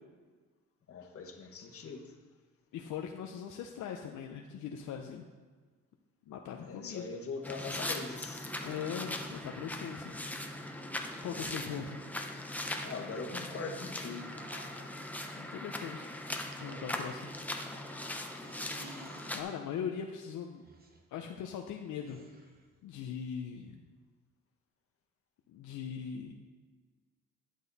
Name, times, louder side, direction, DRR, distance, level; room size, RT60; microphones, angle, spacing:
voice 1, 0.9-2.1 6.6-8.5 12.8-14.3, left 4 dB, 50° left, 2 dB, 1.4 m, -41 dB
voice 2, 2.7-5.3 6.3-7.0 8.6-10.2 11.2-12.0 15.3-16.2 16.6-17.3 19.3-20.6 21.1-22.5 22.8-23.8 25.5-26.3, left 7 dB, 75° left, 3 dB, 0.7 m, -40 dB
sound 1, 7.4-19.4, left 1 dB, 5° left, 0.9 m, -40 dB
sound 2, 14.1-15.0 16.5-17.3 18.4-19.4 20.6-21.0 22.0-22.7, right 2 dB, 30° right, 1.2 m, -54 dB
11.0 x 6.3 x 4.1 m, 1.5 s
cardioid pair, 90°, 30 cm